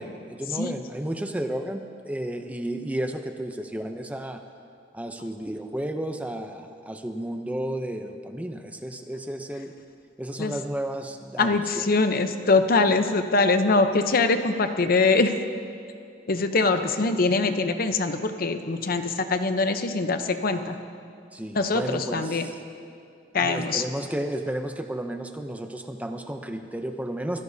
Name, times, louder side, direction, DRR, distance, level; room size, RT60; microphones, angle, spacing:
voice 1, 0.0-4.4 4.9-9.7 10.2-11.9 21.3-22.6 23.4-27.4, right 1 dB, 10° right, 6 dB, 0.6 m, -32 dB
voice 2, 11.4-15.3 16.3-20.8 21.5-22.5 23.3-23.8, left 3 dB, 50° left, 8 dB, 0.8 m, -23 dB
24.0 x 16.0 x 2.7 m, 2.4 s
head